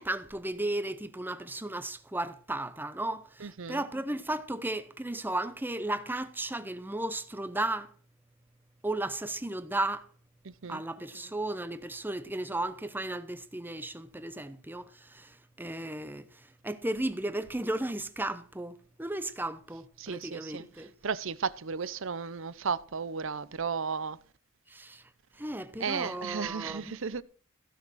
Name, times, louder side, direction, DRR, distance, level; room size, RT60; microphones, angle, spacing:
voice 1, 0.0-7.9 8.8-10.1 10.7-20.9 24.7-25.0 25.4-26.9, right 1 dB, 10° right, 0.8 m, -35 dB
voice 2, 3.4-3.8 10.4-10.8 20.0-24.2 25.8-27.2, right 6 dB, 60° right, 0.7 m, -34 dB
16.0 x 6.4 x 6.2 m
head